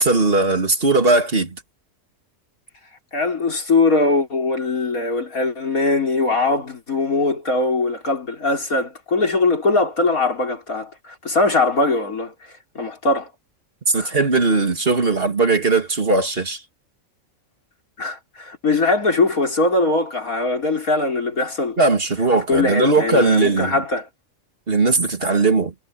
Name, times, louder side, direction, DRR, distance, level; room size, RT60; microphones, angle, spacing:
voice 1, 0.0-1.6 13.9-16.6 21.8-23.8 24.7-25.7, right 3 dB, 45° right, 2.4 m, -18 dB
voice 2, 3.1-12.3 12.8-13.3 14.0-14.1 18.0-21.8 22.5-24.1, left 3 dB, 85° left, 5.1 m, -21 dB
omnidirectional pair, 1.5 m